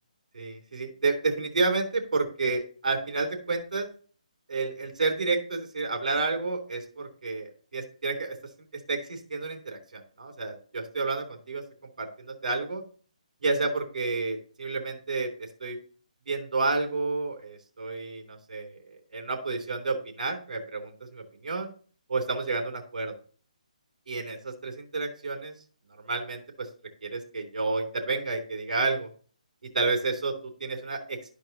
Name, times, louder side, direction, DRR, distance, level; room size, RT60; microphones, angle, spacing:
voice 1, 0.3-3.9 4.5-8.4 8.9-11.6 12.0-12.8 13.4-15.8 16.3-18.8 19.1-21.7 22.1-23.1 24.1-25.5 26.0-26.7 27.0-29.1 29.7-30.3 30.6-31.2, right 3 dB, 75° right, 2 dB, 3.1 m, -30 dB
12.5 x 4.7 x 2.8 m, 0.41 s
hypercardioid pair, 160°, 4 cm